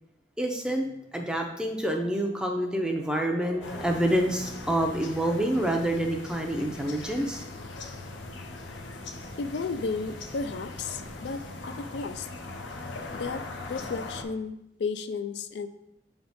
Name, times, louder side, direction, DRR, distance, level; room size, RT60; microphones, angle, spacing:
voice 1, 0.4-0.9 1.1-7.4, right 1 dB, 5° right, 2 dB, 0.5 m, -27 dB
sound 1, 3.6-14.2, left 2 dB, 85° left, 0.7 m, -40 dB
voice 2, 9.4-12.3 13.1-13.4 13.7-15.7, left 4 dB, 70° left, 10 dB, 0.3 m, -33 dB
6.7 x 3.5 x 4.0 m, 0.80 s
head